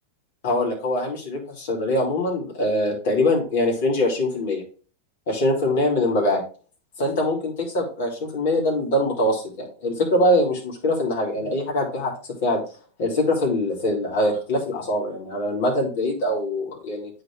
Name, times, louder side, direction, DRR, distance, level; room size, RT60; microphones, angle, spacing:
voice 1, 0.4-4.6 5.3-6.4 7.0-12.1 12.4-12.6 13.0-17.1, left 1 dB, 55° left, -2 dB, 3.3 m, -23 dB
8.6 x 4.4 x 3.5 m, 0.37 s
figure-of-eight pair, 90°, 0 cm